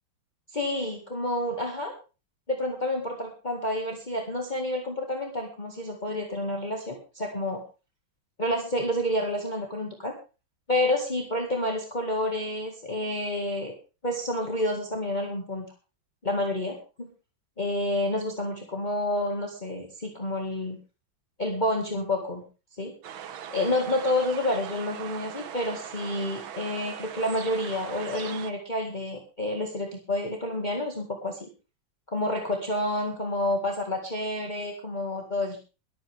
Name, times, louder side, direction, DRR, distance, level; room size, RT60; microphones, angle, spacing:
voice 1, 0.5-1.9 2.5-7.6 8.4-10.1 10.7-13.7 14.0-15.7 16.2-17.1 17.6-20.8 21.4-22.4 22.8-22.9 23.5-31.5 32.1-35.6, left 1 dB, 25° left, 1 dB, 2.0 m, -29 dB
sound 1, 23.0-28.5, right 9 dB, 80° right, 1.8 m, -40 dB
22.0 x 9.0 x 3.6 m, 0.32 s
omnidirectional pair, 2.2 m